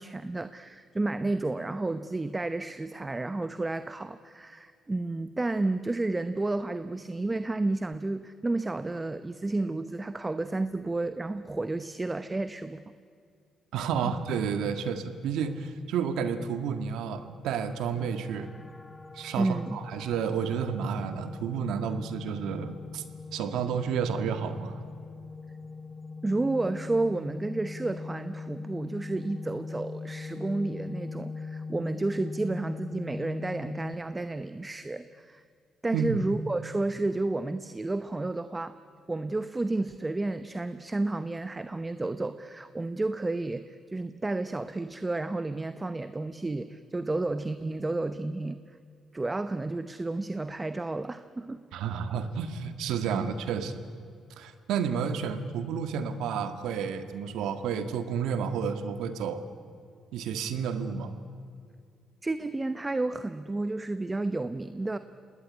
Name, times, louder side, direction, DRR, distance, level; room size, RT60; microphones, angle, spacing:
voice 1, 0.0-12.8 14.0-14.1 19.4-19.8 26.2-35.4 35.8-38.8 39.1-48.6 49.1-52.0 53.1-53.3 62.2-65.0, right 2 dB, 20° right, 12 dB, 0.9 m, -31 dB
voice 2, 13.7-18.5 19.1-23.0 23.3-24.8 35.9-36.2 51.7-53.8 54.4-59.4 60.1-61.1, right 7 dB, 85° right, 9 dB, 1.8 m, -31 dB
sound 1, 18.0-34.0, left 4 dB, 15° left, 1.5 m, -41 dB
26.0 x 19.5 x 9.7 m, 2.3 s
cardioid pair, 90°, 0 cm